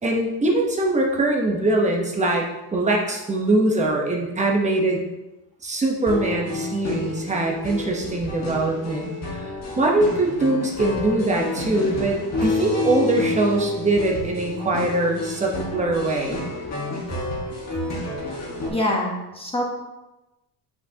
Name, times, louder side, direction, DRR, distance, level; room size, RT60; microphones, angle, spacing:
voice 1, 0.0-2.5 2.7-5.0 5.6-9.5 9.8-16.4, right 2 dB, 15° right, 0 dB, 1.0 m, -22 dB
Gur Durge loop, 6.1-18.7, left 2 dB, 40° left, 1.8 m, -30 dB
voice 2, 18.7-19.7, left 1 dB, 15° left, -2 dB, 1.1 m, -25 dB
8.6 x 6.0 x 2.9 m, 1.0 s
cardioid pair, 160°, 42 cm